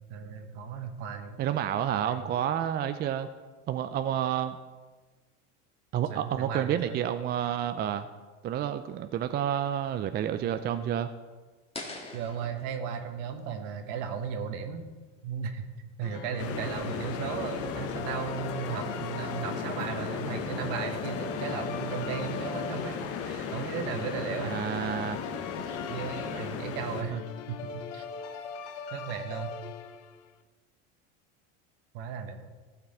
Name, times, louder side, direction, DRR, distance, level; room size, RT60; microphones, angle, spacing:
voice 1, 0.1-1.4 2.0-2.3 6.1-7.0 12.1-14.9 15.2-15.7 16.0-24.6 25.6-27.2 27.5-27.6 27.9-28.0 28.9-29.5 31.9-32.5, right 7 dB, 65° right, 7 dB, 1.4 m, -36 dB
voice 2, 1.4-3.3 3.7-4.6 5.9-8.1 8.4-11.1 24.4-25.2 26.3-26.4 27.1-27.2, right 10 dB, 30° right, 10 dB, 0.4 m, -30 dB
sound 1, 11.7-14.8, left 2 dB, 15° left, 1.8 m, -45 dB
sound 2, 16.0-30.3, left 6 dB, 80° left, 0.9 m, -41 dB
sound 3, 16.4-27.0, left 6 dB, 40° left, 1.0 m, -36 dB
15.0 x 6.0 x 4.3 m, 1.3 s
supercardioid pair, 110°, 35 cm